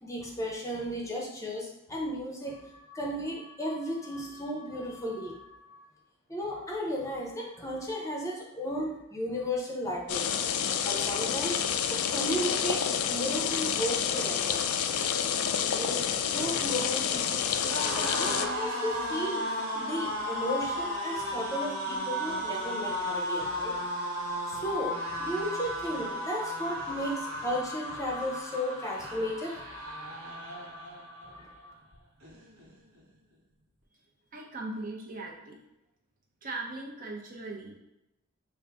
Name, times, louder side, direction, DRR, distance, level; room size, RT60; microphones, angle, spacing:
voice 1, 0.0-5.8 6.3-10.3 10.6-14.6 15.7-16.0 16.3-23.8 24.5-31.7, equal, 15° left, -2 dB, 0.7 m, -35 dB
sound 1, 10.1-18.5, left 8 dB, 90° left, 0.4 m, -29 dB
sound 2, 16.3-31.4 31.7-33.0, equal, 80° right, 1.1 m, -35 dB
voice 2, 34.3-35.6 36.4-37.8, right 2 dB, 40° right, -1 dB, 0.7 m, -39 dB
5.3 x 2.6 x 3.4 m, 0.91 s
head